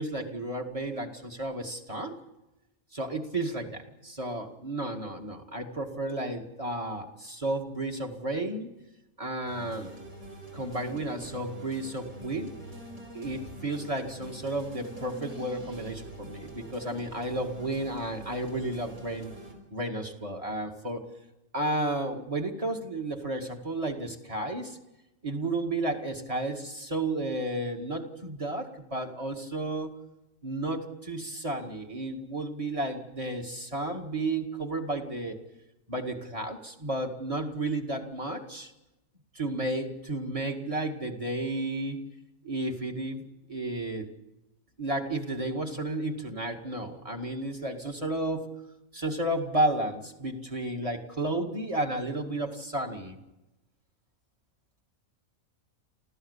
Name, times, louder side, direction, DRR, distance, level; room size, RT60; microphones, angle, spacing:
voice 1, 0.0-2.2 2.9-8.7 9.2-9.9 10.5-12.5 13.1-19.3 19.7-21.1 21.5-24.8 25.2-30.0 30.4-35.4 35.9-38.7 39.3-42.0 42.4-43.2 43.5-44.1 44.8-48.5 48.9-53.2, right 2 dB, 25° right, 3 dB, 2.1 m, -32 dB
sound 1, 9.5-19.5, right 1 dB, 75° right, 5.3 m, -45 dB
28.0 x 15.5 x 8.4 m, 0.97 s
omnidirectional pair, 1.5 m